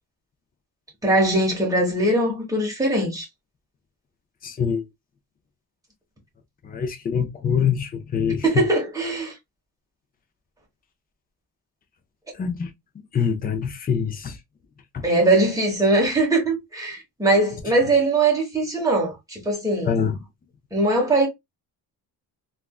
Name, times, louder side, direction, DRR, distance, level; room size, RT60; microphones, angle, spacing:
voice 1, 1.0-3.3 8.4-9.3 15.0-19.9 20.7-21.3, right 2 dB, 10° right, 1.2 m, -21 dB
voice 2, 4.4-4.8 6.6-8.4 12.3-12.7 13.1-14.4 14.9-15.0 19.8-20.2, left 7 dB, 20° left, 0.4 m, -24 dB
3.5 x 2.4 x 2.3 m
cardioid pair, 165°, 44 cm